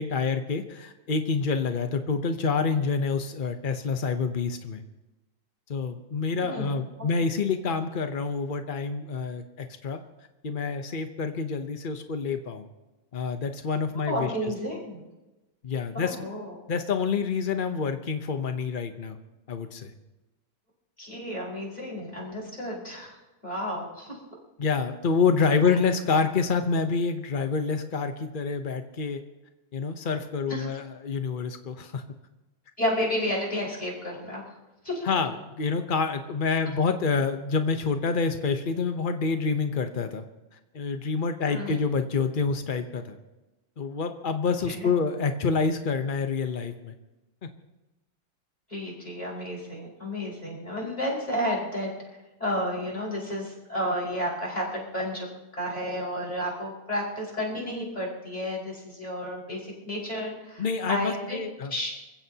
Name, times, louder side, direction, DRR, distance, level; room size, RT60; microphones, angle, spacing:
voice 1, 0.0-4.8 5.7-10.0 10.4-12.7 13.1-14.5 15.6-16.2 16.7-19.2 19.5-19.9 24.6-29.2 29.7-32.0 35.0-40.2 40.7-43.2 43.8-46.9 60.6-61.7, left 5 dB, 70° left, 7 dB, 0.4 m, -27 dB
voice 2, 6.4-6.7 14.1-15.0 15.9-16.5 21.0-23.2 23.4-24.2 25.6-25.8 30.5-30.7 32.8-34.4 34.8-35.1 41.4-41.8 44.7-44.9 48.7-51.9 52.4-55.3 55.6-61.4 61.7-61.9, equal, 20° left, -4 dB, 5.3 m, -31 dB
26.5 x 16.0 x 2.9 m, 1.1 s
omnidirectional pair, 2.3 m